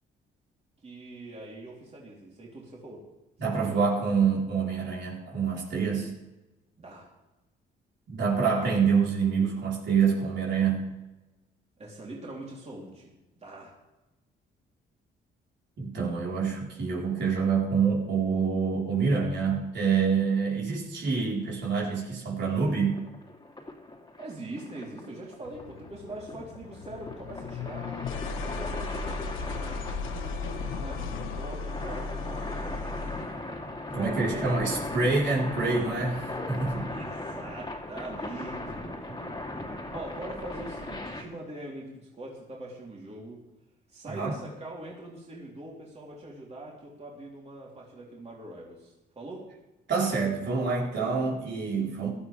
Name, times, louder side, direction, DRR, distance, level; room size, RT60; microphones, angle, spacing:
voice 1, 0.8-3.0 3.5-4.0 6.8-7.1 11.8-13.1 13.4-13.7 24.2-28.0 28.4-33.5 33.9-34.6 36.9-39.5 39.9-43.4 43.9-49.4, right 2 dB, 35° right, -3 dB, 3.6 m, -43 dB
voice 2, 3.4-6.1 8.1-10.9 15.8-23.0 33.9-36.9 44.1-44.4 49.9-52.1, right 5 dB, 60° right, -3 dB, 4.5 m, -26 dB
sound 1, 22.9-41.2, left 2 dB, 20° left, 2.7 m, -38 dB
sound 2, 25.4-33.3, left 4 dB, 85° left, 1.3 m, -36 dB
17.0 x 13.0 x 3.5 m, 1.0 s
cardioid pair, 90°, 20 cm